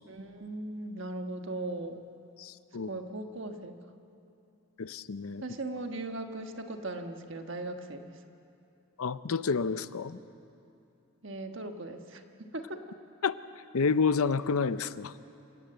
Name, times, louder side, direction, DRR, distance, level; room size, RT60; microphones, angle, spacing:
voice 1, 0.0-2.0 2.8-3.8 5.4-8.2 11.2-12.8, right 2 dB, 60° right, 5 dB, 1.4 m, -38 dB
voice 2, 2.4-2.9 4.8-5.4 9.0-10.2 13.2-13.3 13.7-15.1, left 5 dB, 80° left, 14 dB, 0.6 m, -29 dB
27.0 x 17.5 x 7.9 m, 2.7 s
head